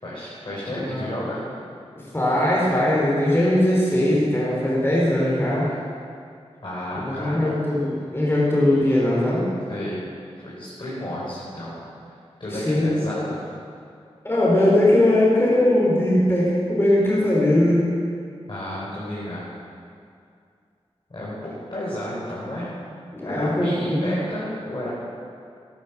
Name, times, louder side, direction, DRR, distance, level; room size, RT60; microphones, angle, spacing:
voice 1, 0.0-1.4 6.6-7.5 9.7-10.0 10.4-11.8 12.0-13.5 18.5-19.5 21.1-22.7 23.2-24.9, left 1 dB, 45° left, -8 dB, 4.8 m, -32 dB
voice 2, 0.7-1.1 2.1-5.7 7.0-9.4 12.5-12.9 14.2-17.8 23.1-24.1, left 1 dB, 20° left, -6 dB, 4.5 m, -20 dB
13.0 x 12.5 x 7.4 m, 2.4 s
cardioid pair, 50°, 11 cm